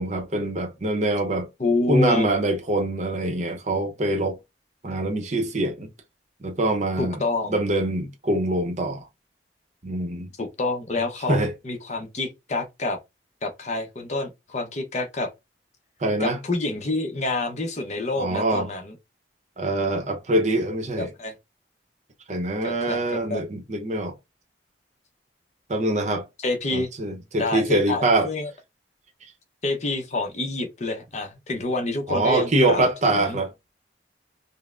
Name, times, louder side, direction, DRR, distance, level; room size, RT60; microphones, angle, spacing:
voice 1, 0.0-1.5 1.9-4.4 4.8-5.9 6.4-7.2 7.5-9.0 9.8-10.3 11.3-11.5 16.0-16.4 18.1-18.7 19.6-21.1 22.3-24.1 25.7-26.2 26.7-28.3 32.1-33.5, right 1 dB, 40° right, 0.7 m, -24 dB
voice 2, 1.6-2.3 7.0-7.6 10.4-13.0 13.4-15.3 16.2-19.0 21.0-21.3 22.6-23.0 23.3-23.4 26.4-26.9 27.4-28.5 29.6-33.4, left 2 dB, 40° left, 0.7 m, -27 dB
5.4 x 2.0 x 2.4 m
head